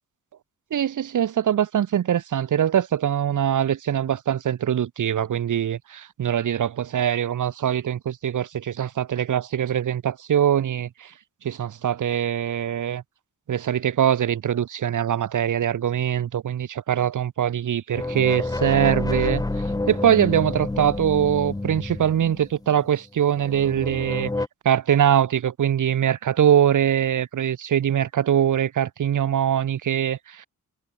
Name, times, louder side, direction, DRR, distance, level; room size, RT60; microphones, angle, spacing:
voice 1, 0.7-11.1 11.4-13.0 13.5-19.4 19.9-24.3 24.6-30.5, right 9 dB, 60° right, 0.7 m, -22 dB
sound 1, 17.9-22.9 23.4-24.5, left 2 dB, 10° left, 0.7 m, -28 dB
wide cardioid pair, 115°, 35 cm